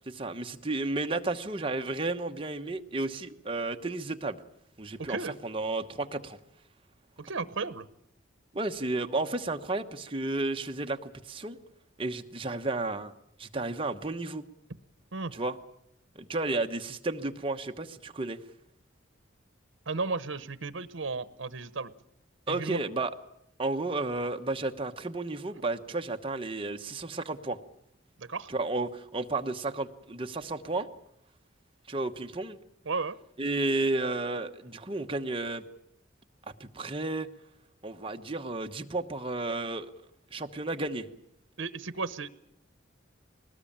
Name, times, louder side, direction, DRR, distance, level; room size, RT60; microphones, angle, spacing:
voice 1, 0.1-4.4 4.8-6.4 8.5-11.6 12.0-13.1 13.4-14.4 15.3-15.6 16.1-18.4 22.5-23.1 23.6-27.6 28.5-30.9 31.9-32.6 33.4-35.6 36.6-37.3 37.8-39.9 40.3-41.1, right 2 dB, 25° right, 5 dB, 1.1 m, -32 dB
voice 2, 5.0-5.3 7.2-7.9 15.1-15.3 19.9-21.9 22.5-22.8 28.2-28.5 32.9-33.2 41.6-42.3, right 4 dB, 75° right, 14 dB, 0.9 m, -34 dB
22.0 x 19.0 x 8.7 m, 0.79 s
head